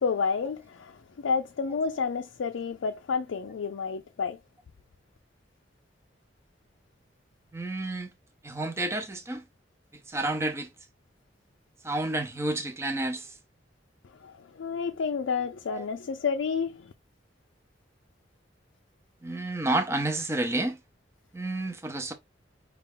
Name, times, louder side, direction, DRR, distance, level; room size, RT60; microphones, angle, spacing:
voice 1, 0.0-4.4 14.2-16.9, left 5 dB, 85° left, 0.4 m, -30 dB
voice 2, 7.5-8.1 8.4-9.4 10.1-10.7 11.8-13.3 15.7-15.8 19.2-20.8 21.3-22.1, right 2 dB, 15° right, 0.7 m, -30 dB
5.3 x 2.4 x 3.4 m
head